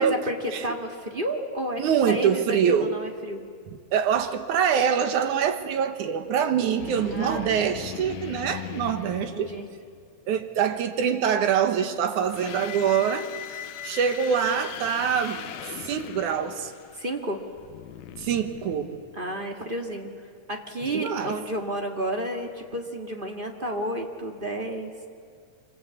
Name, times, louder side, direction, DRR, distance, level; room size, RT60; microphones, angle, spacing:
voice 1, 0.0-3.4 7.0-7.7 9.2-9.7 16.9-17.4 19.1-20.1 20.5-24.9, equal, 20° right, 2 dB, 1.6 m, -31 dB
voice 2, 1.8-2.9 3.7-9.5 10.3-16.7 18.2-19.0 20.8-21.4, right 8 dB, 85° right, 7 dB, 2.8 m, -25 dB
sound 1, 6.8-10.1 12.1-19.4, left 11 dB, 80° left, 2.2 m, -39 dB
26.5 x 25.0 x 8.4 m, 2.2 s
omnidirectional pair, 3.4 m